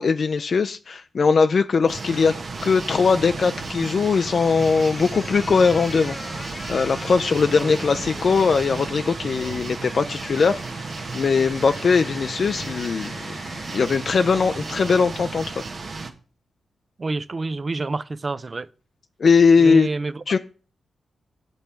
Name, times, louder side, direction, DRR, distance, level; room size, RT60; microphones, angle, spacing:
voice 1, 0.0-2.3 2.6-10.6 11.1-13.1 13.7-15.6 19.2-19.9 20.3-20.4, left 5 dB, 55° left, 0.3 m, -20 dB
sound 1, 1.9-16.1, right 3 dB, 60° right, 1.0 m, -33 dB
sound 2, 4.1-15.2, left 2 dB, 30° left, 0.8 m, -41 dB
voice 2, 17.0-18.7 19.6-20.2, right 3 dB, 40° right, 0.4 m, -28 dB
7.2 x 5.3 x 4.4 m
cardioid pair, 75°, 0 cm